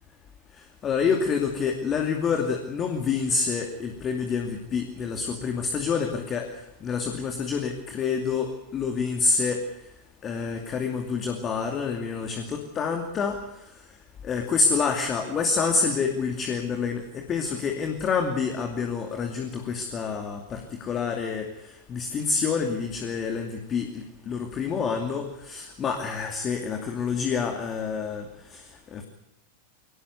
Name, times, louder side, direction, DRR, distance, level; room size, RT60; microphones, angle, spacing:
voice 1, 0.6-9.6 10.2-13.4 14.2-29.0, left 5 dB, 25° left, 4 dB, 2.6 m, -28 dB
24.0 x 18.5 x 8.1 m, 0.86 s
figure-of-eight pair, 90°, 0 cm